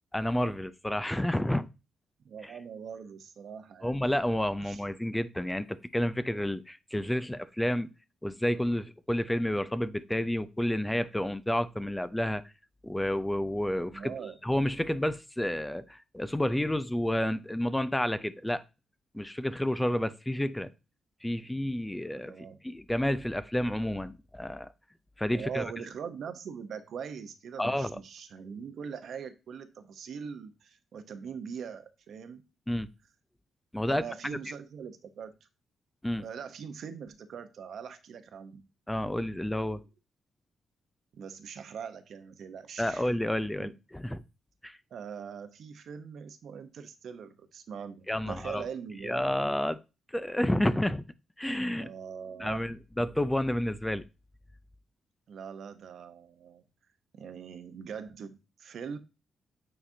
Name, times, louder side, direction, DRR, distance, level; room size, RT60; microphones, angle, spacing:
voice 1, 0.1-1.7 2.4-2.5 3.8-7.9 8.2-12.4 12.8-14.1 14.4-18.6 19.1-20.7 21.2-22.4 22.6-24.7 25.2-25.7 27.6-28.0 32.7-32.9 33.7-34.0 36.0-36.2 38.9-39.8 42.8-44.2 44.6-44.8 48.1-48.6 49.0-49.8 50.1-51.0 51.4-51.9 52.4-54.0, left 1 dB, 5° left, 0.4 m, -30 dB
voice 2, 2.2-4.0 4.6-4.8 13.9-14.4 22.1-22.6 25.3-32.4 33.9-35.4 36.2-38.7 41.1-43.1 43.6-43.7 44.9-49.3 51.8-52.7 55.3-56.6 57.2-59.0, right 7 dB, 65° right, 0.8 m, -42 dB
8.6 x 4.1 x 2.7 m
cardioid pair, 115°, 0 cm